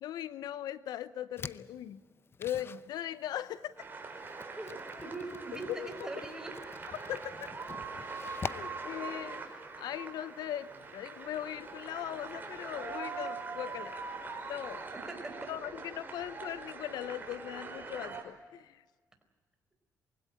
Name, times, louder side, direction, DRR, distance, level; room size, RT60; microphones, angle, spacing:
voice 1, 0.0-2.0 2.4-3.7 5.7-6.1 7.1-7.5 8.5-9.4 9.8-13.9 14.5-14.9 15.5-18.8, left 11 dB, 80° left, 16 dB, 0.8 m, -39 dB
sound 1, 1.4-15.0, left 5 dB, 35° left, 0.7 m, -49 dB
sound 2, 3.8-18.2, right 4 dB, 30° right, 4.7 m, -43 dB
voice 2, 4.6-6.5 14.9-15.5, right 2 dB, 10° right, 6 dB, 4.5 m, -42 dB
23.5 x 16.5 x 10.0 m, 1.3 s
cardioid pair, 90°, 7 cm